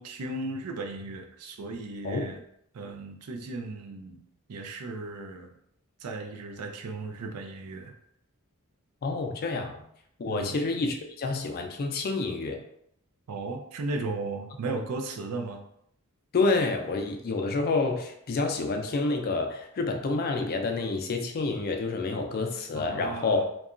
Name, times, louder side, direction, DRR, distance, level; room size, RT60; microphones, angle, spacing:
voice 1, 0.0-2.4 2.7-4.2 4.5-5.5 6.0-7.9 9.5-9.6 10.3-10.6 13.3-15.6 22.7-23.4, right 3 dB, 80° right, 4 dB, 0.4 m, -36 dB
voice 2, 9.0-9.8 10.2-12.6 16.3-23.4, left 3 dB, 45° left, 5 dB, 0.4 m, -28 dB
2.8 x 2.3 x 2.4 m, 0.73 s
head